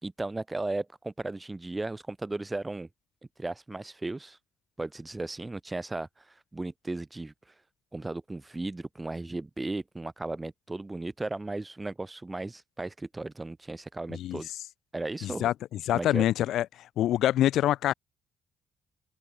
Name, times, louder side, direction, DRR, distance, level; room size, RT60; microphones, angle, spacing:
voice 1, 0.0-2.9 3.4-4.4 4.8-7.3 7.9-14.5 14.9-15.5 15.9-16.3, right 2 dB, 15° right, 1.9 m, -36 dB
voice 2, 15.2-16.7 17.0-17.9, left 12 dB, 75° left, 0.5 m, -25 dB
cardioid pair, 105°, 0 cm